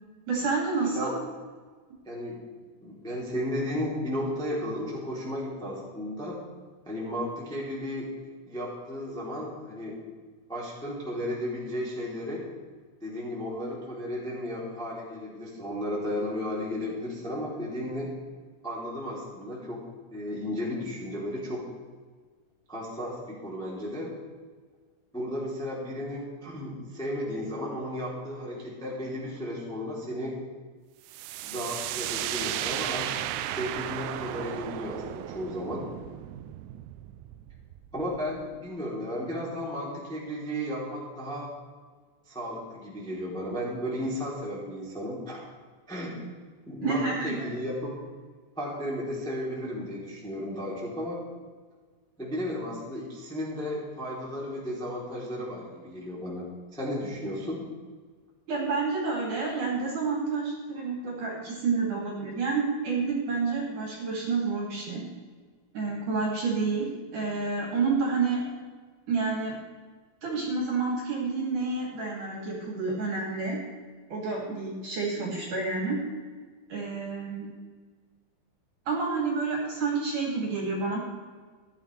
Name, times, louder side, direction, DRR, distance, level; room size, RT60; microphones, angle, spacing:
voice 1, 0.3-1.1 46.8-47.5 58.5-65.1 65.7-68.4 69.1-69.6 70.2-73.6 74.1-76.0 76.7-77.5 78.9-81.0, right 4 dB, 45° right, -3 dB, 3.7 m, -29 dB
voice 2, 2.0-2.4 2.8-6.4 6.8-8.1 8.5-10.0 10.5-12.5 13.0-18.1 18.6-19.8 20.1-21.6 22.7-24.1 25.1-30.3 31.4-33.1 33.4-35.9 37.9-41.5 42.3-45.4 45.9-46.1 46.7-47.9 48.6-51.2 52.2-56.4 56.7-57.6, equal, ahead, -6 dB, 1.9 m, -34 dB
sound 1, 31.1-38.7, right 13 dB, 85° right, 3.2 m, -35 dB
16.0 x 11.5 x 3.4 m, 1.5 s
omnidirectional pair, 5.9 m